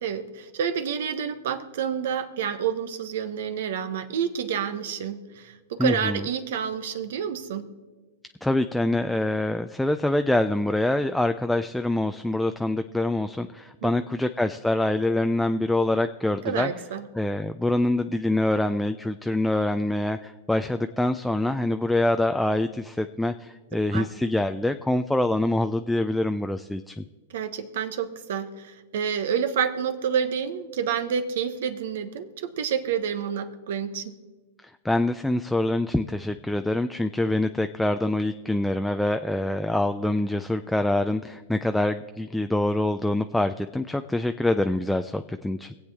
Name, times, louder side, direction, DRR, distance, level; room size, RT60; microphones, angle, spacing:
voice 1, 0.0-7.6 13.8-13.9 16.4-17.0 23.9-24.1 27.3-34.1, right 7 dB, 70° right, 10 dB, 1.1 m, -29 dB
voice 2, 5.8-6.2 8.4-16.7 17.1-26.9 34.8-45.7, left 1 dB, 5° left, 8 dB, 0.4 m, -25 dB
23.0 x 8.0 x 3.5 m, 1.3 s
hypercardioid pair, 120°, 0 cm